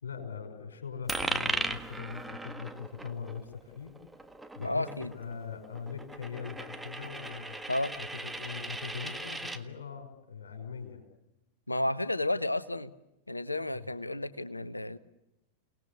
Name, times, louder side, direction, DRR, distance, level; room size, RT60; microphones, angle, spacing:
voice 1, 0.0-3.9 4.5-4.9 5.1-7.6 8.0-11.0 13.7-13.9, left 6 dB, 65° left, 4 dB, 5.6 m, -41 dB
Coin (dropping), 1.1-9.6, right 2 dB, 5° right, 1.6 m, -38 dB
voice 2, 4.6-5.1 7.7-8.0 11.7-12.9 13.3-15.0, left 1 dB, 85° left, 17 dB, 0.9 m, -32 dB
29.5 x 19.5 x 8.3 m, 0.92 s
figure-of-eight pair, 90°, 0 cm